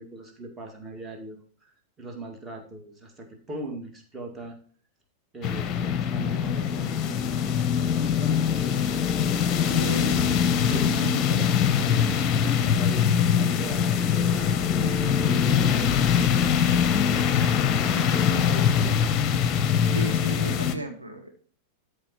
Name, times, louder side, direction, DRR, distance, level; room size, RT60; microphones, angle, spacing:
voice 1, 0.0-4.6 5.3-7.4 7.8-9.0 9.7-14.0 14.3-16.5 17.0-17.3 17.9-19.1, right 2 dB, 20° right, 3 dB, 2.2 m, -39 dB
sound 1, 5.4-20.7, left 8 dB, 30° left, 0.9 m, -23 dB
voice 2, 9.8-10.2 19.9-21.3, right 1 dB, 85° right, 1 dB, 1.8 m, -35 dB
13.5 x 4.8 x 4.5 m, 0.44 s
figure-of-eight pair, 90°, 0 cm